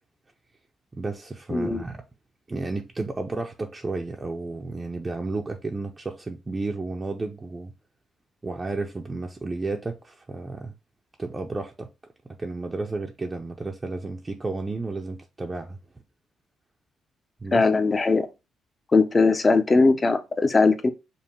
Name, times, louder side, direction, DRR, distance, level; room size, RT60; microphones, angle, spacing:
voice 1, 0.9-2.0 2.5-7.7 8.4-10.7 11.2-11.9 12.4-15.8 17.4-17.7, right 3 dB, 25° right, 0.5 m, -32 dB
voice 2, 1.5-1.8 17.5-18.3 18.9-20.9, left 3 dB, 30° left, 0.6 m, -20 dB
5.2 x 2.2 x 2.9 m
cardioid pair, 90°, 0 cm